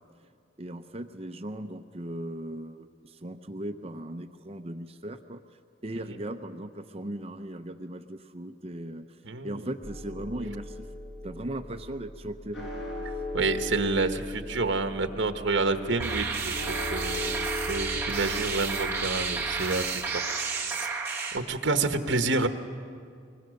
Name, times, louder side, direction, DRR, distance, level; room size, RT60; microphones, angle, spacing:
voice 1, 0.6-5.4 5.8-10.9 11.2-12.7 21.7-21.8, right 1 dB, 30° right, 8 dB, 0.6 m, -38 dB
voice 2, 9.2-9.7 13.3-20.4 21.3-22.5, right 3 dB, 65° right, 7 dB, 1.2 m, -29 dB
sound 1, 9.8-19.6, left 1 dB, 90° left, 6.7 m, -39 dB
sound 2, 16.0-21.4, right 4 dB, 10° right, 1.5 m, -31 dB
24.5 x 21.0 x 6.4 m, 2.3 s
head